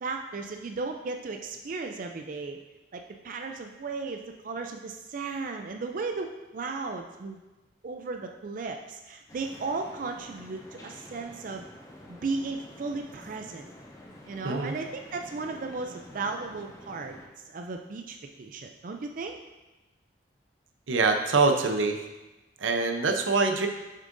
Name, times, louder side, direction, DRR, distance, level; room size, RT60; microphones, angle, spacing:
voice 1, 0.0-2.6 2.9-7.4 7.8-11.6 12.1-13.7 14.3-17.2 17.5-19.4, right 4 dB, 45° right, 4 dB, 0.4 m, -35 dB
sound 1, 9.3-17.3, left 1 dB, 15° left, 0.7 m, -49 dB
voice 2, 14.4-14.8 20.9-22.0 22.6-23.7, right 3 dB, 90° right, 5 dB, 0.6 m, -24 dB
7.2 x 6.5 x 2.6 m, 1.1 s
head